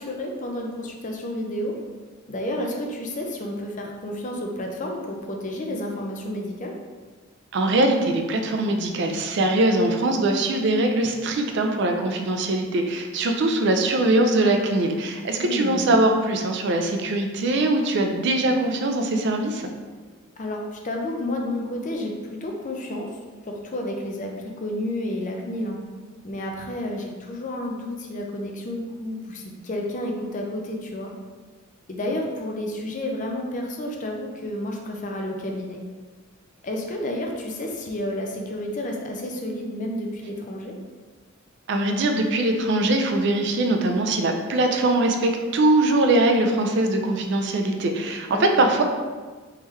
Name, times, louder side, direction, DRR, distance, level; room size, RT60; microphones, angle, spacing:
voice 1, 0.0-1.7 2.3-6.7 15.4-16.0 20.4-23.1 23.5-25.8 26.2-31.1 31.9-35.8 36.6-40.7 48.3-48.6, left 1 dB, 40° left, 1 dB, 0.5 m, -31 dB
voice 2, 7.5-19.7 41.7-48.8, right 2 dB, 60° right, 4 dB, 0.4 m, -22 dB
3.6 x 3.1 x 3.1 m, 1.4 s
head